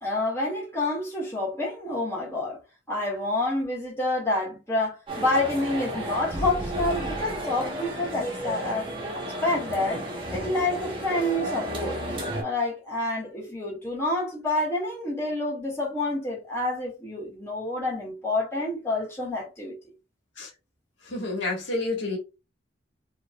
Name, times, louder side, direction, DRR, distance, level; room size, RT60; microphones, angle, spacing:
voice 1, 0.0-2.6 2.9-8.9 9.1-10.0 10.3-12.0 12.4-19.7, left 2 dB, 15° left, 1.8 m, -28 dB
sound 1, 5.1-12.4, right 1 dB, 25° right, 1.1 m, -33 dB
voice 2, 21.0-22.2, left 2 dB, 65° left, 1.6 m, -29 dB
4.3 x 2.9 x 2.3 m
head